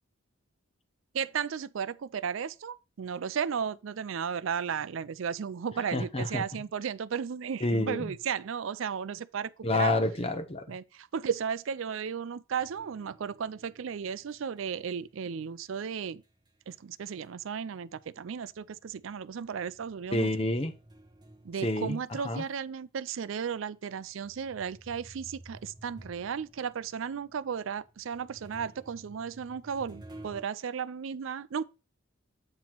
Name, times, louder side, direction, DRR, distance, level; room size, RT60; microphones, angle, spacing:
voice 1, 1.1-9.9 10.7-16.2 16.7-20.3 21.4-31.6, right 7 dB, 65° right, 0.4 m, -34 dB
voice 2, 5.9-6.4 7.6-8.1 9.6-10.8 20.1-20.7 21.6-22.4, left 2 dB, 30° left, 0.7 m, -29 dB
sound 1, 12.6-17.6 17.9-22.6 23.2-23.3 24.0-30.4, right 1 dB, 20° right, 1.0 m, -54 dB
8.9 x 3.0 x 5.9 m
head